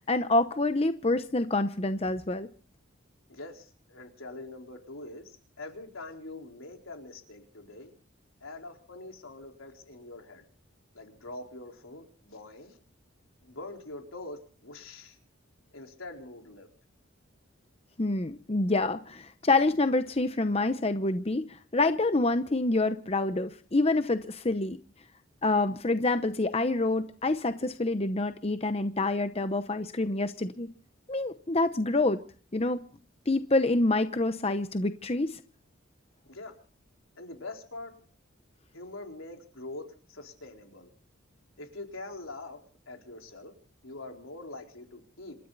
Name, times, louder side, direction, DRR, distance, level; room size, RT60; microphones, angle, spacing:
voice 1, 0.1-2.5 18.0-24.8 25.4-30.7 31.1-32.2 32.5-32.8 33.3-35.4, left 2 dB, 30° left, 10 dB, 0.8 m, -27 dB
voice 2, 3.3-7.9 8.4-10.4 10.9-12.8 13.4-15.2 15.7-16.7 36.3-36.5 37.1-37.9 38.7-40.9 41.6-42.6 42.9-43.5 43.8-45.4, left 2 dB, 90° left, 2 dB, 4.3 m, -44 dB
27.5 x 13.0 x 4.1 m, 0.44 s
head